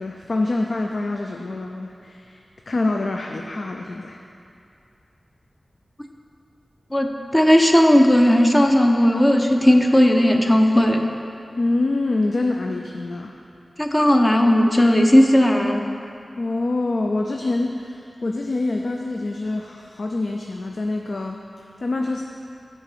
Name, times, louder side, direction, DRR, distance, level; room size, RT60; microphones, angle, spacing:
voice 1, 0.0-2.4 2.7-4.2 11.6-13.4 16.4-22.2, left 2 dB, 70° left, 2 dB, 0.4 m, -25 dB
voice 2, 6.9-11.0 13.8-15.8, equal, 25° left, 3 dB, 0.7 m, -16 dB
6.9 x 4.6 x 6.8 m, 2.6 s
cardioid pair, 50°, 0 cm